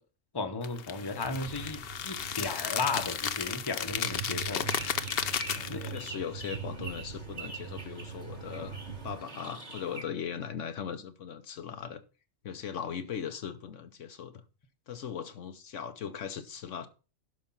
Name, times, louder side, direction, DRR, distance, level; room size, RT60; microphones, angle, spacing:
voice 1, 0.3-4.7 5.7-6.0, left 4 dB, 20° left, 1.0 m, -35 dB
sound 1, 0.6-6.1, left 8 dB, 55° left, 0.8 m, -34 dB
sound 2, 1.2-9.2, right 7 dB, 50° right, 1.1 m, -43 dB
sound 3, 4.5-10.0, right 2 dB, 35° right, 2.0 m, -44 dB
voice 2, 5.5-12.0 12.4-14.4 14.9-16.9, left 8 dB, 70° left, 1.2 m, -39 dB
11.5 x 5.1 x 5.6 m
omnidirectional pair, 1.3 m